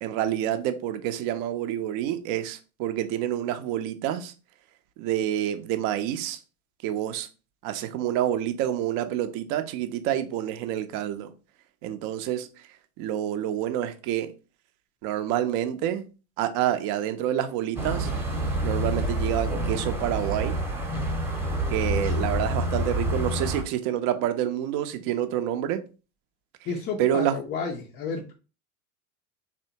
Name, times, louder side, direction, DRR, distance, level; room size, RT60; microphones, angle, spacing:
voice 1, 0.0-4.3 5.0-6.4 6.8-7.3 7.6-11.3 11.8-12.7 13.0-14.3 15.0-16.1 16.4-18.1 18.6-20.6 21.7-25.8 27.0-27.4, right 11 dB, 45° right, 0.5 m, -28 dB
sound 1, 17.8-23.6, right 1 dB, 5° right, 0.8 m, -28 dB
voice 2, 26.7-28.3, left 5 dB, 25° left, 0.4 m, -31 dB
3.3 x 2.7 x 2.7 m
figure-of-eight pair, 80°, 44 cm